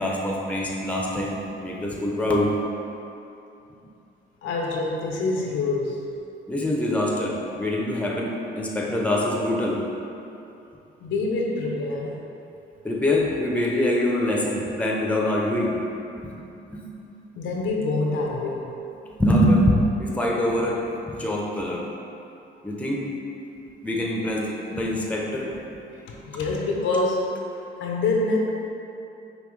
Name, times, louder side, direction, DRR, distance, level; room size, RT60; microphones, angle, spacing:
voice 1, 0.0-2.5 6.5-9.8 12.8-15.8 16.2-16.3 16.7-16.8 19.2-21.8 22.6-23.0 23.8-25.5, left 1 dB, 5° left, -3 dB, 0.6 m, -24 dB
voice 2, 4.4-6.1 11.0-12.2 17.4-18.7 26.2-27.3 27.8-28.7, left 3 dB, 80° left, -1 dB, 0.7 m, -25 dB
5.3 x 2.8 x 3.1 m, 2.8 s
cardioid pair, 90°, 20 cm